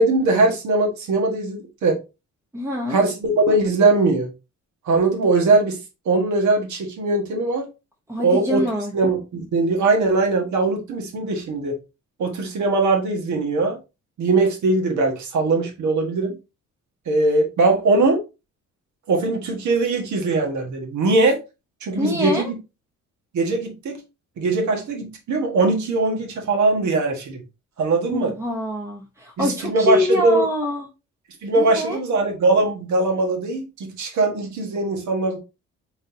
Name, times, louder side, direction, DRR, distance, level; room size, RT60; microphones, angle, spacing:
voice 1, 0.0-2.0 2.9-4.3 4.8-5.8 6.0-7.7 8.2-8.7 8.9-11.7 12.2-13.8 14.2-16.3 17.1-18.2 19.1-21.4 21.8-22.5 23.3-23.9 24.4-27.4 27.8-28.3 29.4-30.4 31.4-35.4, right 3 dB, 70° right, 1.6 m, -20 dB
voice 2, 2.5-3.0 8.1-8.9 22.0-22.5 28.1-30.9 31.5-32.0, left 1 dB, 10° right, 0.9 m, -24 dB
4.1 x 3.9 x 2.7 m
cardioid pair, 90°, 30 cm